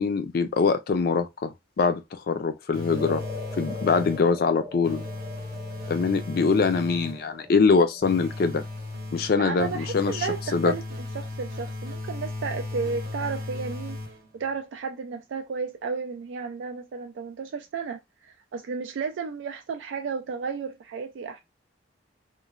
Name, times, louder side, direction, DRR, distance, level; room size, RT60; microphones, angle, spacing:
voice 1, 0.0-3.2 3.6-5.0 5.9-8.6 9.1-10.3 10.5-10.7, left 4 dB, 50° left, 0.3 m, -23 dB
sound 1, 2.7-4.4 4.8-7.3 8.0-14.4, left 2 dB, 50° right, 0.8 m, -36 dB
sound 2, 2.9-11.4, left 3 dB, 10° right, 0.6 m, -42 dB
voice 2, 9.4-14.0 14.3-21.4, right 5 dB, 70° right, 0.3 m, -33 dB
3.0 x 2.1 x 2.4 m
head